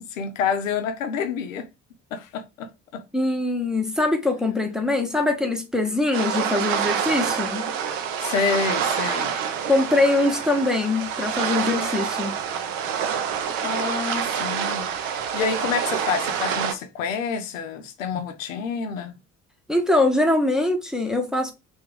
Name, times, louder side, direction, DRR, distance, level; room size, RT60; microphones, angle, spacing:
voice 1, 0.0-1.7 2.1-3.0 8.2-9.4 13.6-19.1, left 6 dB, 75° left, 0.6 m, -28 dB
voice 2, 3.1-7.7 9.7-12.4 19.7-21.5, left 2 dB, ahead, 0.8 m, -22 dB
sound 1, 6.1-16.7, right 8 dB, 70° right, 0.6 m, -27 dB
3.4 x 2.5 x 3.5 m
figure-of-eight pair, 45°, 39 cm